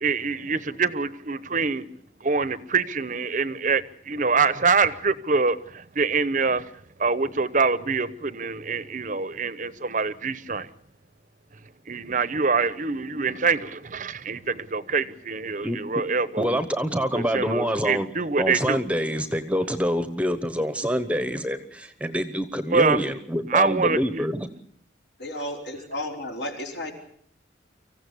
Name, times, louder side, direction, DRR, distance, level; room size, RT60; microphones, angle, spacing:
voice 1, 0.0-1.8 2.2-6.7 7.0-10.7 11.9-16.5 17.1-18.8 22.7-23.0 23.5-24.2, right 4 dB, 45° right, 0.9 m, -25 dB
voice 2, 16.4-18.1 18.4-24.5, equal, 5° right, 1.1 m, -26 dB
voice 3, 25.2-26.9, left 1 dB, 65° left, 5.0 m, -33 dB
25.0 x 15.5 x 8.5 m
head